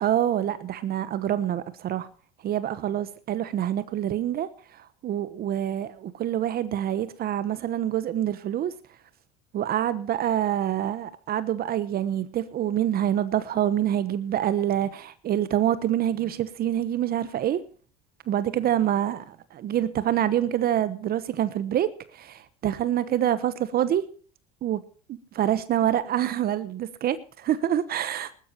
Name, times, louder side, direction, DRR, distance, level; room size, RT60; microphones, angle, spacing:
voice 1, 0.0-2.1 2.4-4.5 4.7-8.7 9.5-17.6 18.3-21.9 22.1-24.0 24.6-24.8 25.1-28.3, right 11 dB, 45° right, 1.1 m, -26 dB
20.0 x 12.5 x 2.9 m
supercardioid pair, 90°, 21 cm